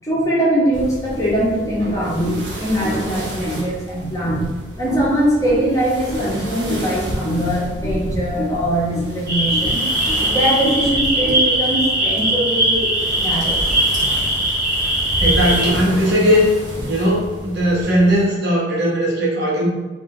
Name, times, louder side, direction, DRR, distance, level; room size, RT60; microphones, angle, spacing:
voice 1, 0.0-13.6, equal, 20° left, -7 dB, 1.0 m, -21 dB
sound 1, 0.7-18.3, equal, 90° right, 0.9 m, -31 dB
sound 2, 9.3-15.7, right 1 dB, 20° right, 1.0 m, -19 dB
voice 2, 15.2-16.5 16.9-19.7, equal, 65° right, -5 dB, 1.1 m, -18 dB
3.7 x 2.7 x 3.2 m, 1.2 s
head